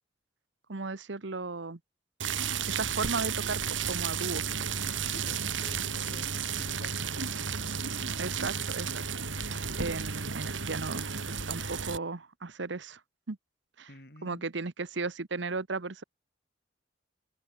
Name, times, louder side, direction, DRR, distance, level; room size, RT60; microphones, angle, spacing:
voice 1, 0.7-1.8 2.8-4.4 8.2-9.0 9.4-13.0 13.3-13.4 13.8-13.9 14.2-16.0, right 3 dB, 75° right, 1.0 m, -35 dB
sound 1, 2.2-12.0, right 6 dB, 90° right, 3.2 m, -33 dB
voice 2, 5.0-6.9 13.9-14.5, left 1 dB, 55° left, 4.2 m, -50 dB
open air
head